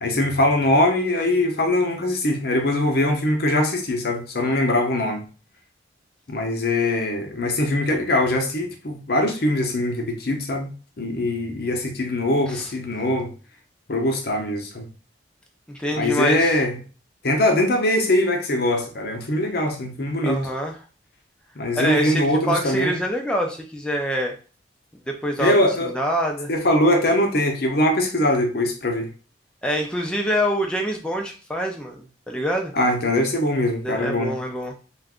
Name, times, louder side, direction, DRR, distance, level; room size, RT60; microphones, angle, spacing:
voice 1, 0.0-5.2 6.3-10.7 11.0-13.3 13.9-14.9 15.9-16.8 17.2-20.4 21.6-23.0 25.4-25.9 26.5-29.1 32.7-34.3, left 1 dB, 55° left, 0.7 m, -22 dB
voice 2, 15.7-16.5 20.2-20.8 21.8-24.3 25.1-25.6 25.9-26.5 29.6-32.7 33.8-34.7, equal, 5° left, 0.4 m, -25 dB
2.5 x 2.3 x 3.6 m
head